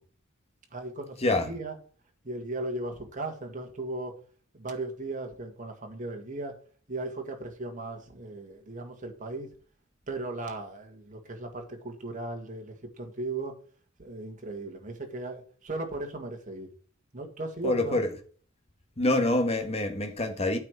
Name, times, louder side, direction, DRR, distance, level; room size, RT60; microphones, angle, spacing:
voice 1, 0.7-1.7 2.2-4.2 4.5-6.6 6.9-9.5 10.1-13.5 14.0-16.7 17.1-18.0, right 2 dB, 40° right, 1.9 m, -37 dB
voice 2, 17.6-18.1 19.0-20.6, left 2 dB, 30° left, 1.4 m, -26 dB
8.8 x 4.9 x 5.9 m
head